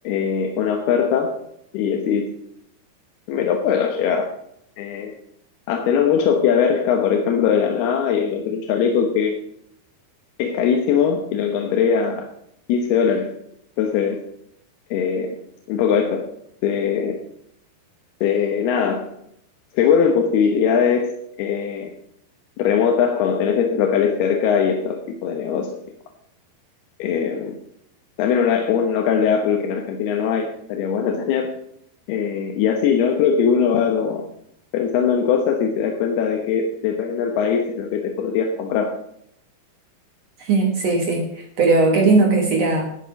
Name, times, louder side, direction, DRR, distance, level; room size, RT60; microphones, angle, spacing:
voice 1, 0.0-1.4 1.7-2.3 3.3-4.3 4.8-5.1 5.7-9.4 10.4-12.3 12.7-13.3 13.8-14.2 14.9-15.4 15.7-16.3 16.6-17.2 18.2-19.1 19.7-21.1 21.4-21.9 22.6-25.7 27.0-27.6 28.2-31.5 32.1-34.2 34.7-39.0, left 7 dB, 85° left, 3 dB, 3.1 m, -20 dB
voice 2, 40.4-42.8, right 3 dB, 55° right, 2 dB, 1.9 m, -18 dB
11.5 x 9.1 x 5.9 m, 0.73 s
omnidirectional pair, 4.5 m